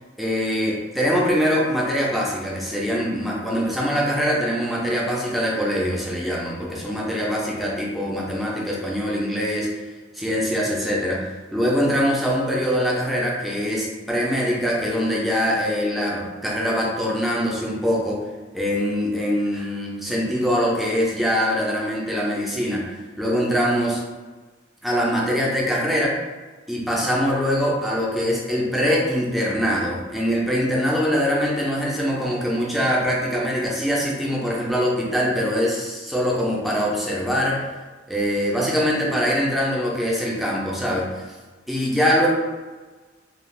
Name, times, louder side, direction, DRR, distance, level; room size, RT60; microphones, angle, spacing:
voice 1, 0.2-9.8 10.1-18.2 18.5-22.8 23.2-24.0 24.8-26.2 26.7-37.7 38.1-41.3 41.7-42.3, equal, ahead, -4 dB, 0.5 m, -23 dB
2.3 x 2.3 x 3.1 m, 1.3 s
head